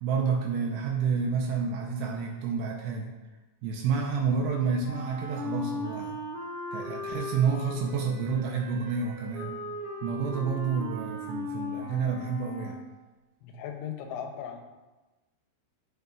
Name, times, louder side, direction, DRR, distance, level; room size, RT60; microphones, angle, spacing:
voice 1, 0.0-3.1 3.6-6.2 6.7-9.5 10.0-12.8, right 5 dB, 85° right, 1 dB, 2.6 m, -29 dB
Wind instrument woodwind instrument, 4.8-12.9, left 1 dB, 45° right, 1.4 m, -38 dB
voice 2, 13.4-14.6, left 8 dB, 85° left, 4 dB, 3.0 m, -37 dB
12.5 x 5.2 x 2.4 m, 1.1 s
omnidirectional pair, 5.5 m